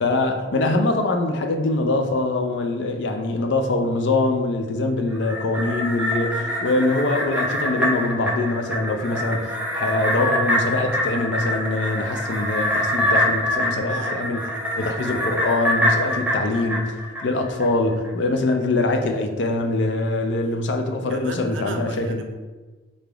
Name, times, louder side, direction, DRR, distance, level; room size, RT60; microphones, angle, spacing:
voice 1, 0.0-14.4 14.8-16.8 17.2-22.2, left 2 dB, 70° left, 5 dB, 0.4 m, -23 dB
sound 1, 5.1-17.7 18.0-18.1, equal, 10° right, 0.4 m, -25 dB
voice 2, 6.4-6.7 13.9-14.9 16.0-16.2 21.1-22.3, right 3 dB, 80° right, 5 dB, 0.4 m, -37 dB
3.8 x 3.3 x 2.3 m, 1.2 s
head